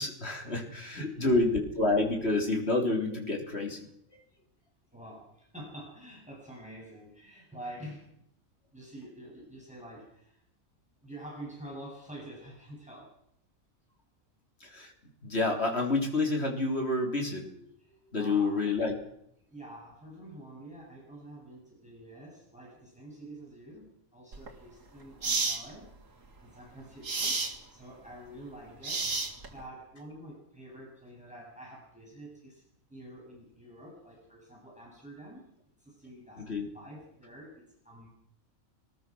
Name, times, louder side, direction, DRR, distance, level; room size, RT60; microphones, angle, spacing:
voice 1, 0.0-3.8 14.6-14.9 15.2-17.6 18.1-18.9 36.4-36.7, left 2 dB, 45° left, 2 dB, 4.0 m, -29 dB
voice 2, 1.0-1.4 4.9-8.1 8.7-10.4 11.0-13.2 17.8-18.7 19.5-25.9 26.4-32.6 32.9-35.5 35.8-38.1, right 1 dB, 5° right, -3 dB, 7.6 m, -47 dB
sound 1, 24.3-24.5 25.2-25.6 27.0-27.5 28.8-29.6, right 3 dB, 65° right, 2.6 m, -30 dB
21.5 x 20.5 x 6.3 m, 0.74 s
omnidirectional pair, 1.5 m